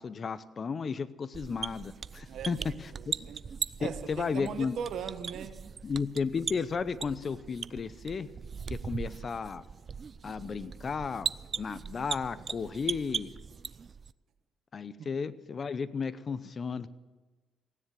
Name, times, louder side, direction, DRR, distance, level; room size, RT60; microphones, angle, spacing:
voice 1, 0.0-3.1 3.8-4.8 5.8-8.3 8.7-9.6 10.2-11.3 11.6-13.3 14.7-16.9, left 5 dB, 40° left, 16 dB, 0.7 m, -34 dB
sound 1, 1.3-14.1, right 6 dB, 40° right, 0.4 m, -39 dB
voice 2, 2.9-3.4 3.8-5.5 15.0-15.1, right 7 dB, 75° right, 9 dB, 1.2 m, -39 dB
16.0 x 9.9 x 7.6 m, 1.3 s
cardioid pair, 90°, 0 cm